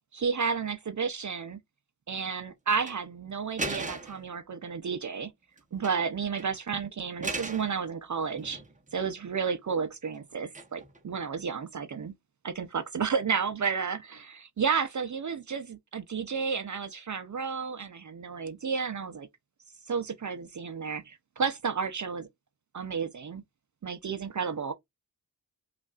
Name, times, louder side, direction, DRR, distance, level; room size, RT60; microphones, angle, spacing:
voice 1, 0.1-1.6 2.1-5.3 5.7-8.6 8.9-12.1 12.4-19.3 19.9-22.3 22.7-23.4 23.8-24.7, right 6 dB, 45° right, 0.5 m, -32 dB
sound 1, 2.7-3.0 3.6-4.3 5.6-6.1 6.4-6.5 7.2-7.7 8.2-8.9 10.5-11.0, right 3 dB, 20° right, 0.8 m, -37 dB
5.2 x 2.5 x 2.3 m
wide cardioid pair, 70°, 41 cm